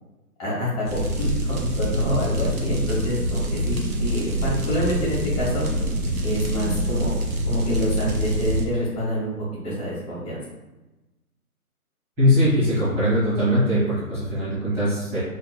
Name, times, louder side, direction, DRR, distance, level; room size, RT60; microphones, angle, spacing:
voice 1, 0.4-5.6 6.2-7.2 7.5-9.3 9.6-10.4, equal, 25° left, -7 dB, 1.4 m, -27 dB
sound 1, 0.9-8.6, equal, 70° right, 1.3 m, -25 dB
voice 2, 12.2-15.2, equal, 5° right, -15 dB, 1.0 m, -21 dB
3.9 x 3.7 x 2.2 m, 1.1 s
hypercardioid pair, 155°, 45 cm